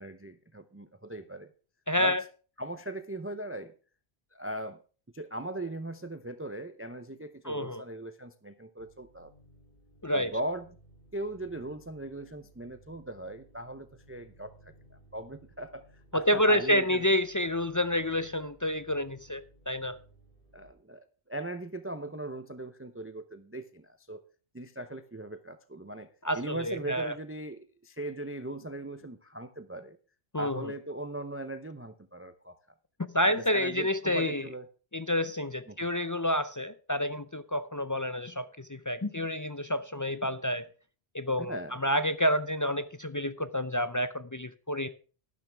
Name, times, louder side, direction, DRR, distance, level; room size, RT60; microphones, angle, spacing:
voice 1, 0.0-1.5 2.0-2.2 2.6-3.7 4.3-4.8 5.1-9.3 10.1-10.7 11.1-17.1 20.5-24.2 24.5-26.1 26.3-30.0 30.4-32.6 33.4-34.7 35.7-35.8 41.4-41.7, right 1 dB, 15° right, 0.6 m, -39 dB
voice 2, 1.9-2.2 7.4-7.8 10.0-10.4 16.1-20.0 26.2-27.1 30.3-30.7 33.1-34.5 34.9-40.7 41.1-44.9, left 1 dB, 35° left, 0.3 m, -29 dB
sound 1, 8.8-20.7, right 2 dB, 60° left, 5.1 m, -59 dB
12.0 x 12.0 x 3.4 m
omnidirectional pair, 1.1 m